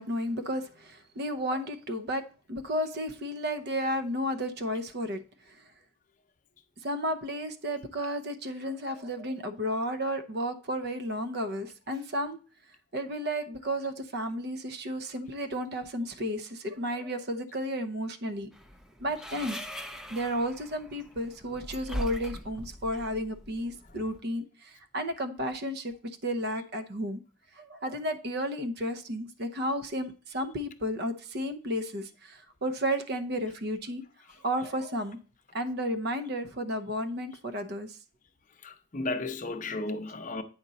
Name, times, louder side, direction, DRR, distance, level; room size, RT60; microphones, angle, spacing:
voice 1, 0.0-2.2 2.5-5.2 6.8-12.4 12.9-18.5 19.0-19.6 20.1-25.9 26.2-27.2 27.6-34.0 34.4-35.2 35.5-38.0, equal, 50° right, 0.7 m, -32 dB
sound 1, 18.5-24.2, left 1 dB, 5° right, 0.4 m, -41 dB
voice 2, 38.6-40.4, left 2 dB, 40° left, 0.6 m, -34 dB
8.8 x 5.1 x 4.0 m
head